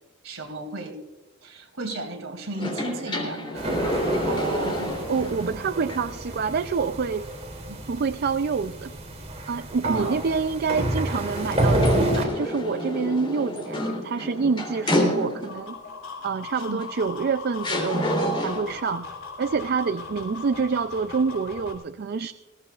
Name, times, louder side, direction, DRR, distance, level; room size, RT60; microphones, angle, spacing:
voice 1, 0.2-1.0 1.4-3.7 7.7-7.8 9.8-10.2 14.2-14.3 16.6-16.8, right 2 dB, 70° right, 4 dB, 2.7 m, -34 dB
sound 1, 2.5-5.5 5.9-6.0 11.4-15.7 16.8-16.9 17.6-18.8, left 1 dB, 25° left, 3.1 m, -28 dB
sound 2, 3.6-12.2, right 1 dB, 35° right, 2.7 m, -29 dB
voice 2, 4.3-4.8 5.1-7.3 7.9-8.9 9.5-15.8 16.2-19.1 19.4-22.3, right 5 dB, 50° right, 11 dB, 0.4 m, -27 dB
sound 3, 15.3-21.7, left 4 dB, 65° left, 3.6 m, -39 dB
20.5 x 16.5 x 2.4 m, 1.1 s
head